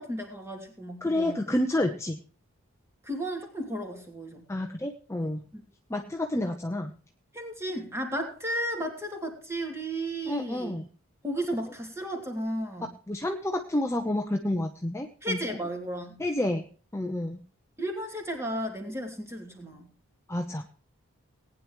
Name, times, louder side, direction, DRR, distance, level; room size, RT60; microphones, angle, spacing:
voice 1, 0.0-1.4 3.0-4.4 5.5-5.6 7.3-10.7 11.2-12.9 15.2-16.2 17.8-19.9, right 1 dB, 10° right, 3 dB, 2.7 m, -34 dB
voice 2, 1.0-2.2 4.5-5.4 5.9-6.9 10.3-10.9 13.1-15.4 16.2-16.7 16.9-17.4 20.3-20.6, left 1 dB, 15° left, 4 dB, 0.8 m, -29 dB
19.0 x 9.9 x 3.1 m, 0.40 s
head